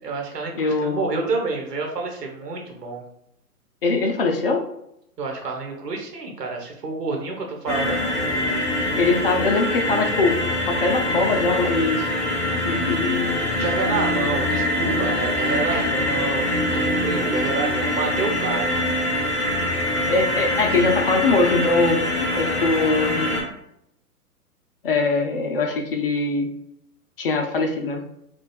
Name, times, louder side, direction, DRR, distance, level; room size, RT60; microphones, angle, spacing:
voice 1, 0.0-3.0 5.2-8.0 13.6-18.7, right 4 dB, 85° right, 1 dB, 1.1 m, -28 dB
voice 2, 0.5-1.3 3.8-4.6 8.9-10.4 10.7-12.1 12.6-13.4 15.7-15.9 20.1-23.4 24.8-26.5 27.2-28.0, left 3 dB, 40° left, 3 dB, 0.4 m, -22 dB
sound 1, 7.7-23.4, left 1 dB, ahead, 1.1 m, -24 dB
4.4 x 2.3 x 2.3 m, 0.77 s
hypercardioid pair, 125°, 47 cm